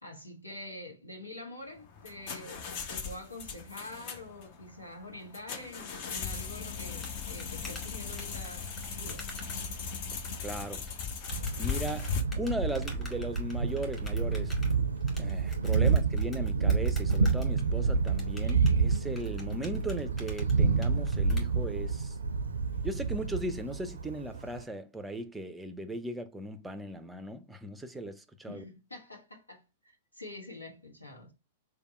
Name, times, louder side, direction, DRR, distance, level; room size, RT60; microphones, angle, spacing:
voice 1, 0.0-9.3 28.5-31.3, left 2 dB, 85° left, 1.0 m, -46 dB
sound 1, 1.8-12.2, left 6 dB, 45° left, 0.7 m, -38 dB
sound 2, 7.0-21.4, left 3 dB, 15° left, 2.0 m, -47 dB
voice 2, 10.4-10.9 11.6-14.5 15.2-22.2 22.8-28.6, right 1 dB, 5° right, 0.5 m, -37 dB
Thunder, 11.3-24.6, right 5 dB, 75° right, 0.4 m, -29 dB
3.4 x 2.3 x 4.1 m
figure-of-eight pair, 105°, 0 cm